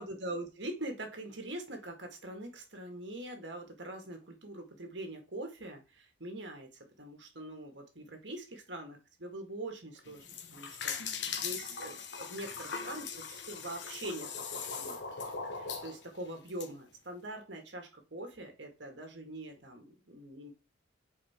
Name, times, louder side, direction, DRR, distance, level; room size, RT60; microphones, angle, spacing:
voice 1, 0.0-15.0 15.5-20.5, right 1 dB, 65° right, 3 dB, 1.9 m, -43 dB
sound 1, 10.1-16.7, left 5 dB, 60° left, 1.1 m, -40 dB
5.5 x 4.7 x 4.3 m, 0.28 s
head